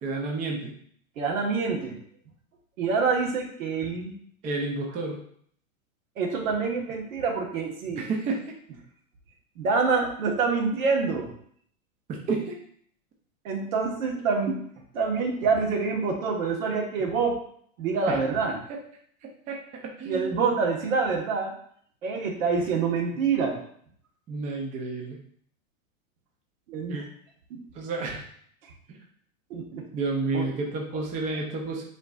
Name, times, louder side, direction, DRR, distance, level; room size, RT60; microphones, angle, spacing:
voice 1, 0.0-0.7 4.4-5.2 8.0-8.5 12.1-12.6 18.1-18.2 19.2-20.5 24.3-25.2 26.9-27.0 27.7-28.2 28.9-29.0 29.9-31.8, right 3 dB, 20° right, 0 dB, 0.5 m, -31 dB
voice 2, 1.2-2.0 2.8-4.1 6.2-8.1 9.6-11.3 13.4-14.5 14.9-17.4 17.8-18.6 20.1-21.5 22.0-23.6 26.7-27.0 27.5-27.6 29.5-29.8 30.3-30.5, right 4 dB, 70° right, 1 dB, 1.4 m, -26 dB
8.0 x 2.7 x 2.4 m, 0.62 s
hypercardioid pair, 135°, 42 cm